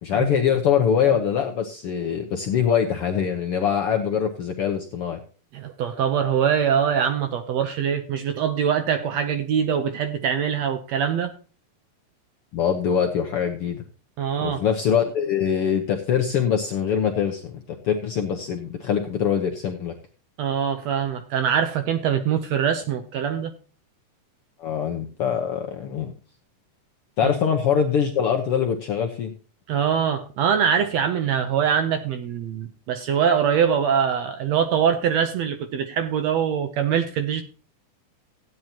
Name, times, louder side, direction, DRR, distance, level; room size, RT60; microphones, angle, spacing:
voice 1, 0.0-5.2 12.5-13.8 14.4-19.9 24.6-26.1 27.2-29.3, left 8 dB, 70° left, 1.4 m, -23 dB
voice 2, 5.5-11.3 14.2-14.6 20.4-23.5 27.2-27.3 29.7-37.4, right 8 dB, 75° right, 1.7 m, -23 dB
15.5 x 9.4 x 2.9 m
omnidirectional pair, 3.8 m